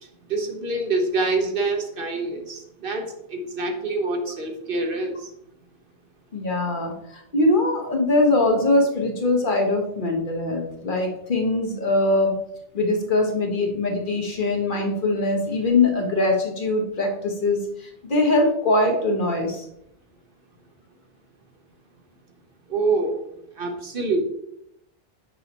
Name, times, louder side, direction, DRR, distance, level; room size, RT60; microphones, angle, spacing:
voice 1, 0.3-5.2 22.7-23.2 23.6-24.2, right 3 dB, 60° right, 4 dB, 1.1 m, -26 dB
voice 2, 6.3-12.3 12.7-19.7, left 2 dB, 55° left, 2 dB, 1.2 m, -22 dB
6.8 x 5.5 x 2.9 m, 0.76 s
omnidirectional pair, 1.0 m